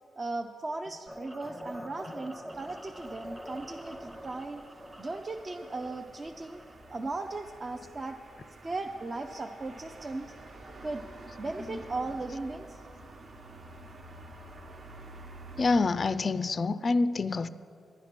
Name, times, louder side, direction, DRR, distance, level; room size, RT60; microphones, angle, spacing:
voice 1, 0.2-4.6 5.0-6.6 6.9-8.2 8.6-10.3 10.8-11.1 11.4-12.8, right 2 dB, 25° right, 4 dB, 0.4 m, -37 dB
sound 1, 1.1-7.0, equal, 10° right, 0.9 m, -45 dB
sound 2, 2.5-15.8, right 2 dB, 45° right, 1.1 m, -49 dB
voice 2, 15.6-17.5, left 3 dB, 35° left, 14 dB, 0.4 m, -27 dB
11.0 x 10.0 x 5.9 m, 2.4 s
cardioid pair, 125°, 0 cm